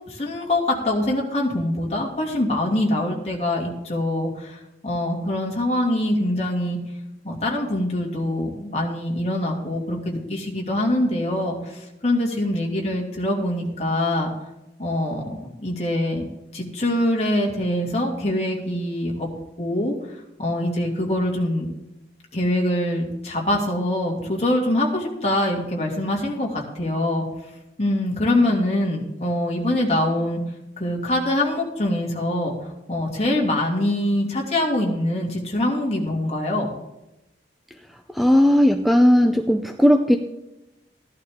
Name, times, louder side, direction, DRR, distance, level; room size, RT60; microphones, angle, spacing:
voice 1, 0.1-6.8 7.2-14.3 14.8-16.2 16.5-19.3 19.6-19.9 20.4-21.7 22.3-27.3 27.8-30.4 30.8-32.5 32.9-36.7, left 1 dB, 35° left, -1 dB, 2.4 m, -24 dB
voice 2, 38.2-40.2, equal, ahead, 5 dB, 0.5 m, -16 dB
15.0 x 11.5 x 3.7 m, 0.96 s
head